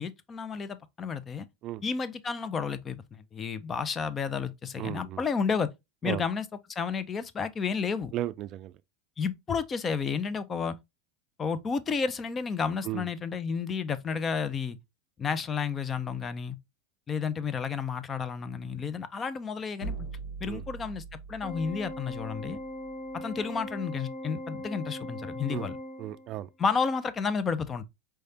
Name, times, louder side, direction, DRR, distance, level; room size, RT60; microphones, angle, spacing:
voice 1, 0.0-1.5 1.8-5.7 6.0-8.1 9.2-10.8 11.4-14.8 15.2-16.6 17.1-19.9 20.4-22.6 23.1-25.8 26.6-27.8, left 5 dB, 30° left, 0.5 m, -31 dB
voice 2, 4.8-5.2 6.0-6.2 8.1-8.7 12.9-13.0 20.4-20.6 25.5-25.7 26.0-26.5, right 13 dB, 50° right, 0.3 m, -34 dB
sound 1, 19.8-23.7, right 3 dB, 80° left, 1.6 m, -42 dB
Organ, 21.4-26.5, left 1 dB, 45° left, 1.7 m, -40 dB
4.6 x 3.2 x 2.7 m
hypercardioid pair, 100°, 0 cm